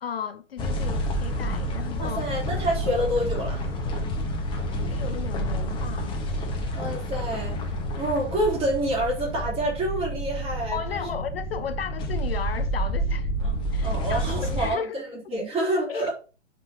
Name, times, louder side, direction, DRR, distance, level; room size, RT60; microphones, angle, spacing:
voice 1, 0.0-2.2 4.6-6.2 10.7-13.3 13.7-15.0 15.9-16.1, left 7 dB, 55° left, 0.7 m, -35 dB
sound 1, 0.6-14.7, equal, 15° left, 1.5 m, -29 dB
voice 2, 2.0-3.6 6.7-7.6 8.0-11.1 13.4-13.6 13.8-16.1, right 1 dB, 15° right, 3.8 m, -27 dB
9.4 x 6.1 x 3.0 m
figure-of-eight pair, 125°, 36 cm